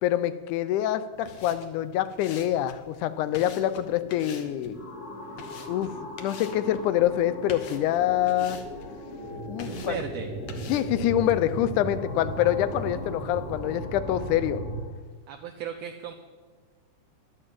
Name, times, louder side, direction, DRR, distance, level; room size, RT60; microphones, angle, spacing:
voice 1, 0.0-4.8 5.7-5.9 6.2-8.6 9.5-10.0 10.7-14.6, left 12 dB, 90° left, 13 dB, 2.1 m, -26 dB
sound 1, 1.1-13.8, left 5 dB, 60° left, 1.6 m, -48 dB
sound 2, 2.8-14.8, right 1 dB, 20° left, 1.9 m, -37 dB
voice 2, 9.7-10.3 15.3-16.1, right 8 dB, 75° right, 5 dB, 1.6 m, -36 dB
11.5 x 8.9 x 7.6 m, 1.4 s
omnidirectional pair, 3.5 m